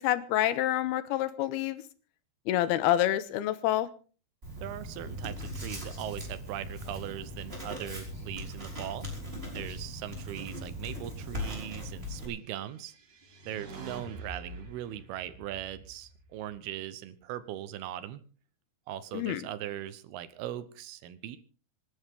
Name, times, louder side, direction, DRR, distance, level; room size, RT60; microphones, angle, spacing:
voice 1, 0.0-1.8 2.5-3.9 19.1-19.4, left 13 dB, 85° left, 13 dB, 2.9 m, -27 dB
Writing, 4.4-12.3, equal, 15° right, 5.2 m, -39 dB
voice 2, 4.6-9.1 9.5-13.0 13.5-18.2 18.9-21.4, right 12 dB, 80° right, 14 dB, 3.0 m, -39 dB
sound 1, 12.6-16.9, right 3 dB, 55° right, 3.9 m, -47 dB
26.5 x 11.5 x 3.7 m, 0.37 s
omnidirectional pair, 4.5 m